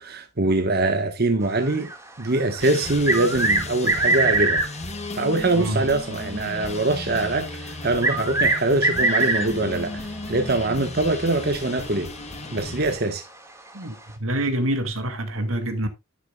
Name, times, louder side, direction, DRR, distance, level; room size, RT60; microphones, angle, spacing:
voice 1, 0.0-1.9 2.2-4.6 5.1-12.1 12.5-13.2, right 2 dB, 50° right, 1.3 m, -23 dB
sound 1, 1.5-4.8 7.2-7.3 8.0-9.7 11.3-11.4 11.8-11.9 13.7-13.8, right 2 dB, 15° right, 1.8 m, -23 dB
sound 2, 2.6-13.0, left 2 dB, 30° left, 1.6 m, -35 dB
voice 2, 13.7-15.9, right 1 dB, 80° right, 2.4 m, -26 dB
11.5 x 9.9 x 2.3 m
head